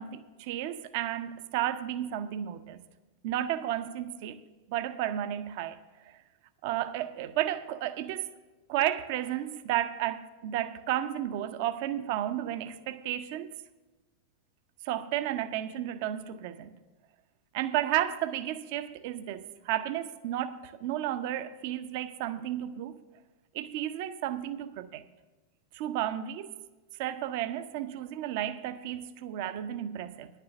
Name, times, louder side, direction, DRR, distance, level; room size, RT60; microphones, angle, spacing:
voice 1, 0.0-2.8 3.2-4.4 4.7-5.8 6.1-6.2 6.6-8.3 8.7-13.5 14.8-16.7 17.5-23.0 23.5-25.0 25.7-26.5 27.0-30.3, right 12 dB, 50° right, 0.5 m, -32 dB
10.0 x 6.6 x 8.2 m
figure-of-eight pair, 90°, 0 cm